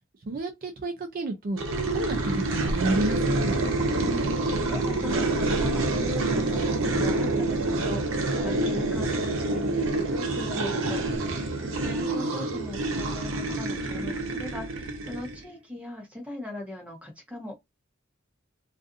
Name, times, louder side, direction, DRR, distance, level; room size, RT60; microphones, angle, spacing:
voice 1, 0.2-1.6 1.9-3.6, right 2 dB, 45° right, 0.4 m, -31 dB
sound 1, 1.6-15.4, right 2 dB, 75° right, 0.7 m, -27 dB
voice 2, 3.9-17.6, left 1 dB, 5° right, 0.9 m, -40 dB
2.5 x 2.5 x 2.4 m
head